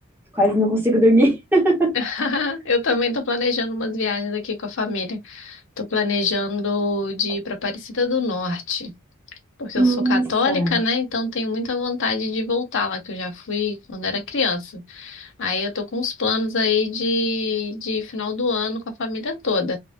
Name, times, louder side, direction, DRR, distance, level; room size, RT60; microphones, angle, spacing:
voice 1, 0.3-1.9 9.8-10.8, right 1 dB, 10° right, 1.1 m, -18 dB
voice 2, 1.9-8.9 9.6-19.8, left 3 dB, 60° left, 1.1 m, -25 dB
3.3 x 2.5 x 2.5 m
head